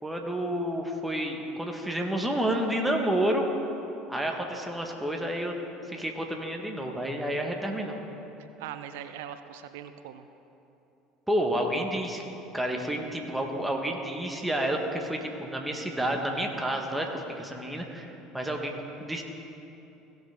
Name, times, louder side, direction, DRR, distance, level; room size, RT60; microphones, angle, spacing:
voice 1, 0.0-3.4 4.1-5.5 5.9-8.0 11.3-12.3 12.5-19.2, right 1 dB, 5° right, 1 dB, 1.7 m, -30 dB
voice 2, 8.6-10.3, right 10 dB, 75° right, 10 dB, 0.5 m, -41 dB
17.5 x 6.9 x 3.8 m, 2.9 s
hypercardioid pair, 70°, 0 cm